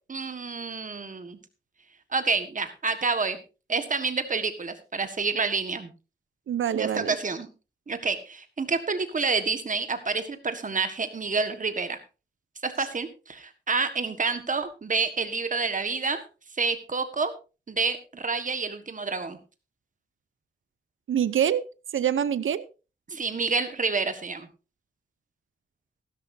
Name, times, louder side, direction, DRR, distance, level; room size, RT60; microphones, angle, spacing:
voice 1, 0.1-1.4 2.1-3.4 3.7-5.9 6.7-7.5 7.9-12.0 12.6-16.2 16.5-17.3 17.7-19.4 23.1-24.5, right 4 dB, 40° right, 9 dB, 1.5 m, -28 dB
voice 2, 6.5-7.2 21.1-21.7 21.9-22.7, right 9 dB, 80° right, 16 dB, 0.7 m, -25 dB
15.5 x 12.5 x 2.7 m, 0.31 s
wide cardioid pair, 130°, 20 cm